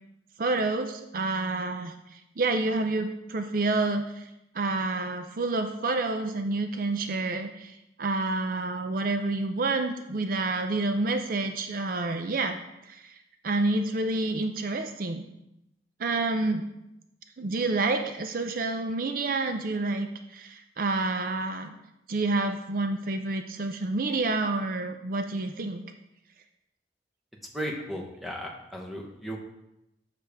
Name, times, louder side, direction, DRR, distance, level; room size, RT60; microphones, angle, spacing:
voice 1, 0.4-4.3 4.5-12.6 12.9-13.1 13.4-15.2 16.0-16.6 17.4-21.8 22.1-25.8, right 2 dB, 50° right, 6 dB, 0.5 m, -28 dB
voice 2, 27.5-29.4, equal, ahead, -1 dB, 1.1 m, -35 dB
7.6 x 6.6 x 3.5 m, 0.87 s
head